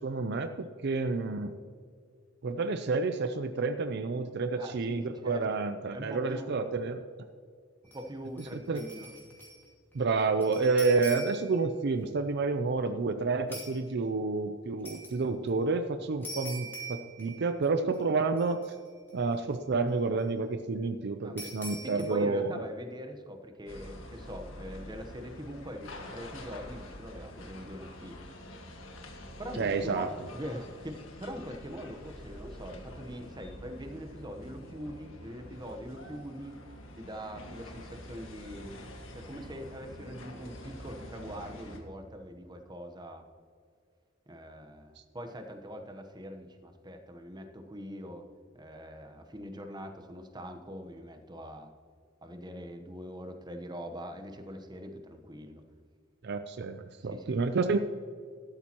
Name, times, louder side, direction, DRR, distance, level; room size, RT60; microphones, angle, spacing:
voice 1, 0.0-1.6 2.4-7.0 8.5-8.8 9.9-18.7 19.1-22.6 29.6-30.1 56.2-57.8, right 4 dB, 55° right, 9 dB, 0.5 m, -29 dB
voice 2, 4.6-5.5 5.9-6.6 7.9-9.1 21.2-21.5 21.8-28.3 29.4-36.6 36.9-38.8 39.1-43.2 44.3-48.3 48.5-51.7 52.2-55.6 57.0-57.4, equal, 20° right, 5 dB, 1.0 m, -43 dB
sound 1, 7.9-8.1 8.4-9.7 9.9-11.6 13.5-13.8 14.8-15.2 16.2-17.7 17.9-18.0 18.4-19.1 21.4-22.1, equal, 10° left, 2.5 m, -43 dB
sound 2, 23.7-41.8, left 1 dB, 80° left, 1.7 m, -47 dB
12.5 x 12.5 x 3.0 m, 2.1 s
head